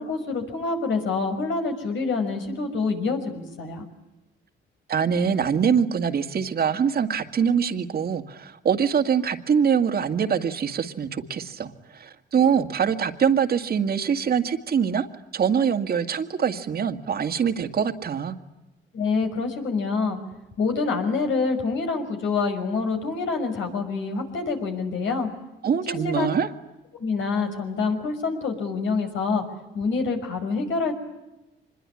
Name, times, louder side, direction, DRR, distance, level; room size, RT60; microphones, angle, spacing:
voice 1, 0.0-3.9 18.9-20.2 20.6-25.3 25.9-26.3 27.0-29.4 29.7-30.9, left 4 dB, 75° left, 5 dB, 5.8 m, -26 dB
voice 2, 4.9-15.1 15.3-18.4 25.6-26.5, right 7 dB, 50° right, 6 dB, 2.0 m, -24 dB
25.5 x 21.5 x 9.9 m, 1.0 s
cardioid pair, 90°, 20 cm